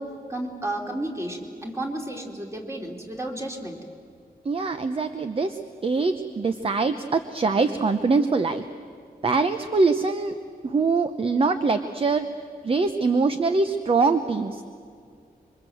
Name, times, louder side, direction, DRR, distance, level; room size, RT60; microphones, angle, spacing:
voice 1, 0.0-3.8, right 1 dB, 15° right, 1 dB, 3.0 m, -32 dB
voice 2, 4.4-8.6 9.2-10.3 10.6-12.3 12.6-14.6, right 4 dB, 35° right, 9 dB, 0.8 m, -23 dB
26.0 x 24.0 x 7.8 m, 2.2 s
wide cardioid pair, 170°, 16 cm